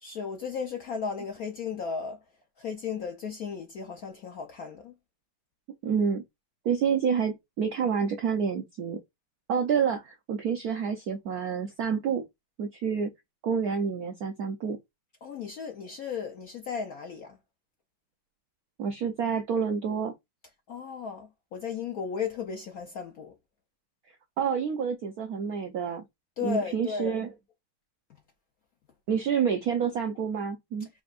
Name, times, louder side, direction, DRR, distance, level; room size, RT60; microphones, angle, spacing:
voice 1, 0.0-2.2 2.6-4.9 15.2-17.4 20.7-23.3 26.4-27.2, left 6 dB, 75° left, 0.8 m, -35 dB
voice 2, 5.8-6.2 6.6-9.0 9.5-12.2 12.6-13.1 13.4-14.8 18.8-20.1 24.4-26.0 26.4-27.3 29.1-30.9, right 6 dB, 80° right, 0.8 m, -28 dB
4.9 x 3.5 x 2.4 m
omnidirectional pair, 2.3 m